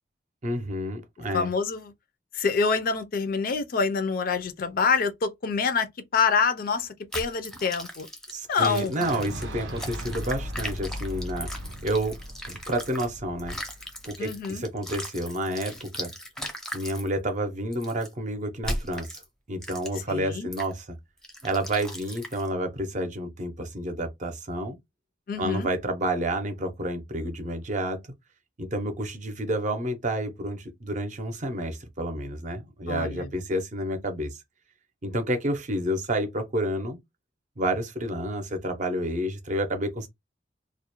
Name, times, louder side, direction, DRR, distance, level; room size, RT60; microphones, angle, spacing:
voice 1, 0.4-1.5 8.3-11.5 11.8-12.2 12.4-13.6 14.0-16.1 16.7-19.2 19.5-21.0 21.4-24.8 25.4-28.0 28.6-34.4 35.0-37.0 37.6-40.1, right 1 dB, 40° right, 0.6 m, -30 dB
voice 2, 1.3-1.9 2.3-5.9 6.1-6.9 7.1-8.1 8.5-9.0 14.2-14.6 20.1-20.5 25.3-25.7 32.9-33.3, left 5 dB, 50° left, 0.4 m, -26 dB
sound 1, 7.1-13.1 13.4-17.1 17.7-18.1 18.6-19.2 19.6-20.1 20.5-20.7 21.2-22.5, equal, 5° left, 0.5 m, -38 dB
Boom, 8.5-14.4, equal, 85° right, 0.6 m, -38 dB
2.3 x 2.1 x 2.9 m
head